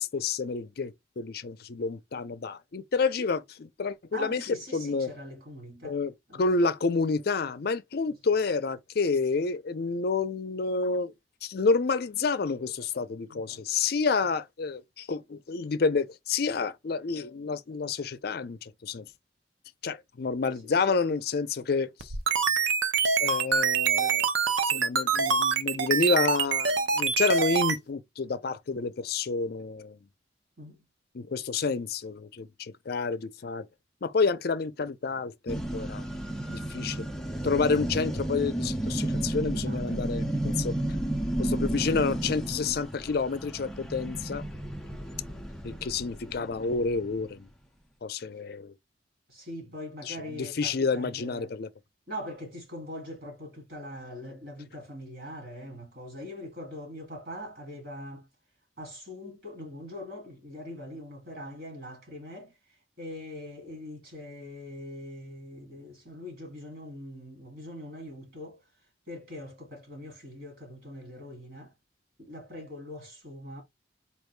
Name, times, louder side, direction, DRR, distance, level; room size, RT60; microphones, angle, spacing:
voice 1, 0.0-4.5 4.7-5.1 5.8-11.1 11.4-19.1 19.8-22.1 23.2-24.3 24.7-30.0 31.1-33.7 34.0-36.0 36.5-37.1 37.4-40.8 41.4-44.4 45.6-47.5 48.0-48.7 50.1-51.7, left 4 dB, 55° left, 0.5 m, -29 dB
voice 2, 4.1-6.0 6.3-6.4 8.1-8.2 13.3-13.6 20.6-21.0 30.6-30.8 39.7-40.0 44.9-45.4 49.3-51.5 52.1-58.3 58.8-62.5 63.0-68.6 69.1-71.7 72.2-73.6, left 1 dB, 55° right, 2.4 m, -42 dB
sound 1, 22.0-27.8, right 6 dB, 85° right, 0.7 m, -25 dB
sound 2, 35.5-47.4, right 1 dB, 5° left, 0.5 m, -32 dB
4.3 x 2.7 x 3.3 m
head